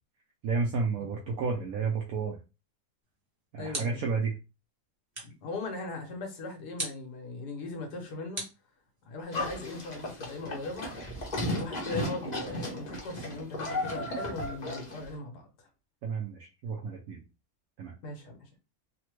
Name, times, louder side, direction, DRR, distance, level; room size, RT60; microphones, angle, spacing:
voice 1, 0.4-2.4 3.5-4.3 16.0-17.2 17.8-17.9, right 4 dB, 70° right, 1.0 m, -31 dB
sound 1, 3.0-4.2 5.1-5.5 6.8-7.1 8.3-9.2, right 2 dB, 20° right, 0.9 m, -40 dB
voice 2, 3.6-4.0 5.2-8.4 9.0-10.9 11.4-15.7 18.0-18.5, left 2 dB, 80° left, 1.5 m, -39 dB
Livestock farm animals working animals, 9.3-15.1, left 1 dB, 35° left, 0.7 m, -35 dB
3.3 x 2.1 x 3.0 m
omnidirectional pair, 1.7 m